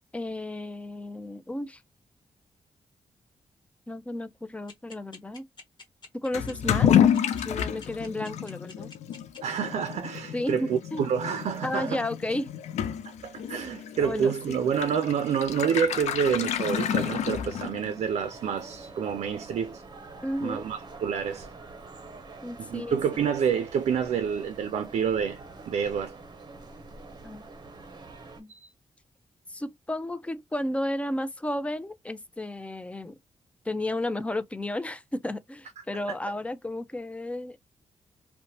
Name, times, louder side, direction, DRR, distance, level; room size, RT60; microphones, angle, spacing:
voice 1, 0.1-1.8 3.9-5.4 6.2-6.9 7.4-8.9 10.3-11.1 11.6-12.5 14.0-14.6 20.2-20.7 22.4-23.0 27.2-27.4 28.4-28.5 29.5-33.2 33.6-37.6, left 1 dB, 10° left, 0.5 m, -33 dB
sound 1, 4.7-9.4, left 4 dB, 40° left, 1.3 m, -46 dB
Toilet flush / Liquid, 6.3-18.0, left 9 dB, 90° left, 0.4 m, -29 dB
voice 2, 9.4-12.0 13.2-19.8 20.4-21.5 22.6-25.4 25.7-26.1 28.5-28.7 35.9-36.0, right 7 dB, 75° right, 0.4 m, -28 dB
sound 2, 15.9-28.4, right 3 dB, 40° right, 0.7 m, -46 dB
2.8 x 2.1 x 2.7 m
cardioid pair, 65°, 11 cm